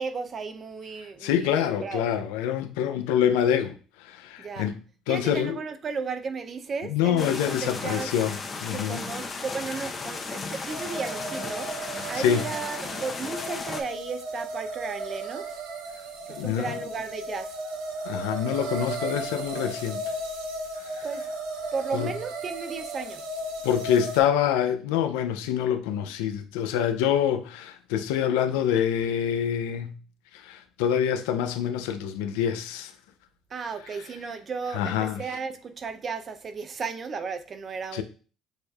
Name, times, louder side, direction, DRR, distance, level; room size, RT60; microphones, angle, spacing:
voice 1, 0.0-2.1 4.4-4.7 5.1-8.1 8.7-11.7 12.1-15.6 16.3-17.5 21.0-21.2 21.7-23.2 33.5-38.0, right 5 dB, 40° right, 0.5 m, -34 dB
voice 2, 1.2-4.8 5.1-5.6 6.9-9.0 12.1-12.5 16.3-16.8 18.0-20.0 20.9-21.1 21.9-22.1 23.6-30.0 30.3-32.9 34.7-35.2 37.9-38.0, left 9 dB, 85° left, 0.4 m, -26 dB
sound 1, 7.2-13.8, left 4 dB, 35° left, 0.7 m, -35 dB
sound 2, 10.7-24.2, right 2 dB, 85° right, 0.7 m, -35 dB
6.4 x 2.6 x 2.3 m
supercardioid pair, 85°, 0 cm